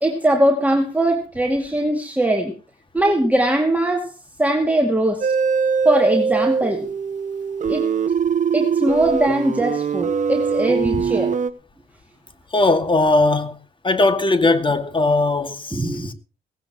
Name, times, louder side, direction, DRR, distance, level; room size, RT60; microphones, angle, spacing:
voice 1, 0.0-2.5 2.9-4.1 4.4-5.3 5.8-6.9 7.7-7.9 8.5-11.3 15.7-16.1, right 1 dB, 5° right, 2.5 m, -20 dB
sound 1, 5.2-11.5, right 6 dB, 40° right, 1.2 m, -22 dB
voice 2, 12.5-13.6 13.8-16.1, left 2 dB, 25° left, 2.2 m, -19 dB
18.0 x 16.0 x 3.1 m
cardioid pair, 90°, 20 cm